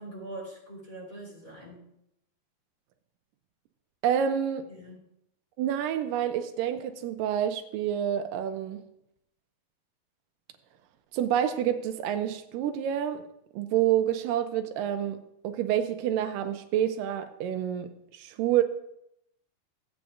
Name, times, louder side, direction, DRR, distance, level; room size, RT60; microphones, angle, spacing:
voice 1, 0.0-1.9 4.7-5.0, right 2 dB, 25° left, -5 dB, 4.3 m, -43 dB
voice 2, 4.0-4.7 5.6-8.8 11.1-13.2 13.5-15.2 15.4-18.6, right 10 dB, 85° right, 8 dB, 2.2 m, -28 dB
16.0 x 8.7 x 2.5 m, 0.80 s
omnidirectional pair, 3.9 m